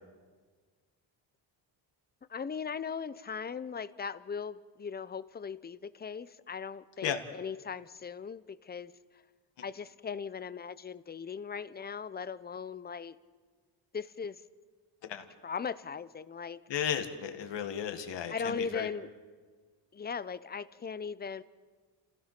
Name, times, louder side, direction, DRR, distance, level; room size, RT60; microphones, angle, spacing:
voice 1, 2.3-8.9 9.6-13.2 13.9-14.4 15.4-16.6 18.3-19.1 19.9-21.4, left 6 dB, 20° left, 15 dB, 0.6 m, -38 dB
voice 2, 16.7-18.9, left 8 dB, 65° left, 6 dB, 1.9 m, -34 dB
30.0 x 16.0 x 5.9 m, 1.5 s
cardioid pair, 125°, 46 cm